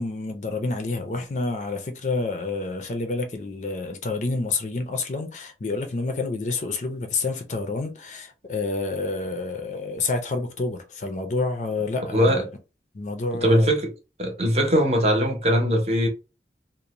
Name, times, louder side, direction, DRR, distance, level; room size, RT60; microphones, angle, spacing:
voice 1, 0.0-12.5 12.9-13.7, left 3 dB, 40° left, 0.4 m, -28 dB
voice 2, 13.4-13.9 14.2-16.1, equal, 35° right, 0.7 m, -20 dB
2.5 x 2.0 x 2.9 m
head